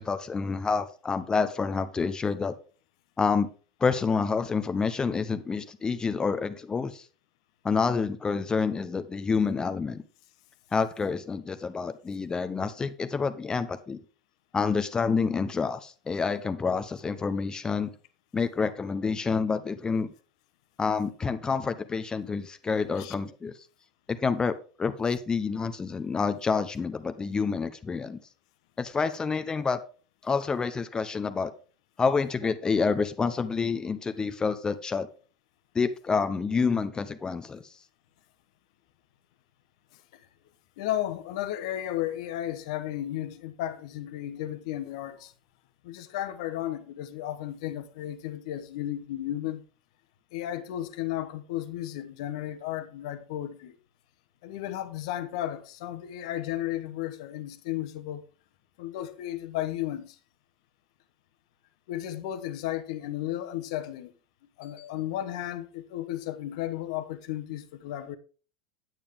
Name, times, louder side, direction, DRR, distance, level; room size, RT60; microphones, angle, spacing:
voice 1, 0.0-2.5 3.2-3.5 3.8-7.0 7.6-10.0 10.7-14.0 14.5-17.9 18.3-20.1 20.8-23.5 24.1-24.5 24.8-28.2 28.8-29.8 30.2-31.5 32.0-35.1 35.7-37.6, left 5 dB, 20° left, 0.7 m, -28 dB
voice 2, 40.8-45.3 45.8-49.6 50.3-53.8 54.4-58.2 58.8-60.2 61.9-64.1 64.6-68.2, left 13 dB, 60° left, 1.0 m, -34 dB
9.1 x 8.5 x 3.5 m
hypercardioid pair, 85°, 4 cm